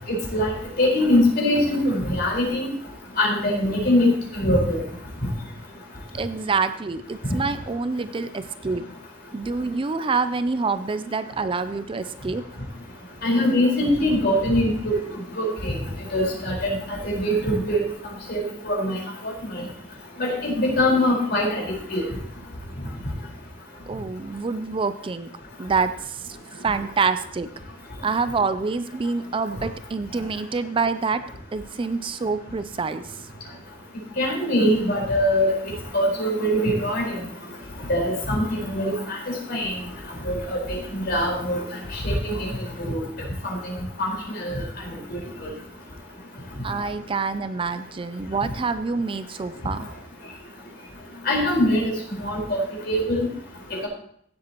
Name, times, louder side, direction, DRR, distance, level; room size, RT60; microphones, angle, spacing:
voice 1, 0.1-2.7 3.2-4.8 13.2-15.0 15.4-15.8 16.1-17.8 18.3-19.0 20.2-21.6 21.9-22.0 34.2-35.5 35.9-37.2 37.9-39.2 39.5-39.7 40.2-41.6 41.9-42.5 42.8-43.0 43.4-43.6 44.0-44.1 44.4-44.6 45.1-45.2 51.2-51.9 52.2-52.6 52.9-53.2 53.7-53.9, left 1 dB, 60° left, -2 dB, 4.5 m, -22 dB
voice 2, 6.1-8.8 9.3-12.4 19.6-19.7 23.9-25.3 25.6-26.4 26.6-27.5 28.0-31.2 31.5-33.3 46.6-49.9, right 4 dB, 30° right, 11 dB, 0.4 m, -26 dB
16.5 x 7.8 x 3.0 m, 0.67 s
head